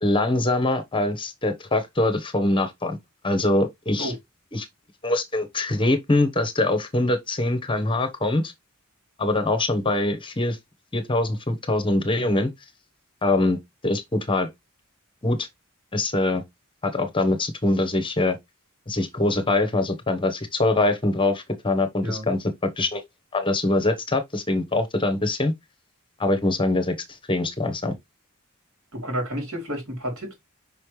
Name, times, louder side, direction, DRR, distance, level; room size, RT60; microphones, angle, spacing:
voice 1, 0.0-3.0 3.2-4.1 4.5-4.7 5.0-8.5 9.2-10.6 10.9-12.5 13.2-13.6 13.8-14.5 15.2-15.5 15.9-16.4 16.8-18.4 18.9-22.5 22.8-23.0 23.3-25.5 26.2-26.9 27.3-27.9, left 2 dB, 25° left, 1.1 m, -23 dB
voice 2, 22.0-22.3 28.9-30.3, equal, 80° right, 3.9 m, -30 dB
5.5 x 5.4 x 3.2 m
head